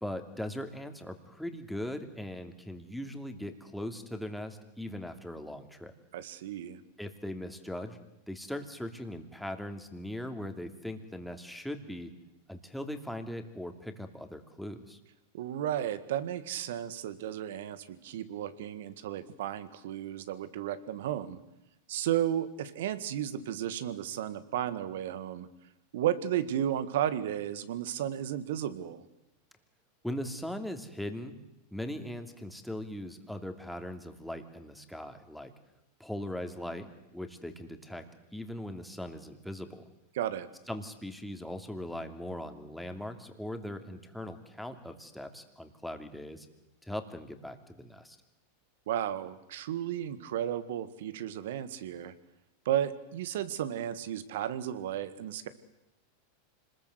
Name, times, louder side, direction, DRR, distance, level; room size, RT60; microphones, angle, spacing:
voice 1, 0.0-5.9 7.0-8.0 8.3-12.1 12.5-15.0 30.0-31.4 31.7-35.5 36.0-39.9 40.7-46.5 46.8-48.2, left 1 dB, ahead, 6 dB, 2.9 m, -40 dB
voice 2, 6.1-6.8 15.3-21.4 21.9-25.5 25.9-29.0 40.2-40.5 48.9-52.1 52.7-55.5, right 11 dB, 70° right, 13 dB, 1.9 m, -33 dB
26.5 x 20.5 x 8.2 m, 0.91 s
hypercardioid pair, 105°, 0 cm